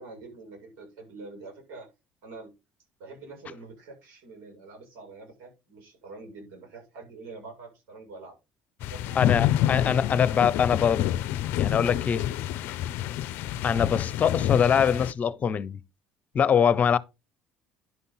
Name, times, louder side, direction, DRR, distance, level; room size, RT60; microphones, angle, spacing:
voice 1, 0.0-1.9 2.2-2.5 3.0-8.3 8.8-9.4, right 3 dB, 70° right, 6.8 m, -45 dB
sound 1, 8.8-15.1, left 12 dB, 65° left, 0.5 m, -28 dB
voice 2, 9.1-11.1 11.6-12.3 13.6-15.8 16.3-17.0, left 7 dB, 40° left, 0.9 m, -23 dB
11.0 x 5.6 x 3.9 m
hypercardioid pair, 65°, 4 cm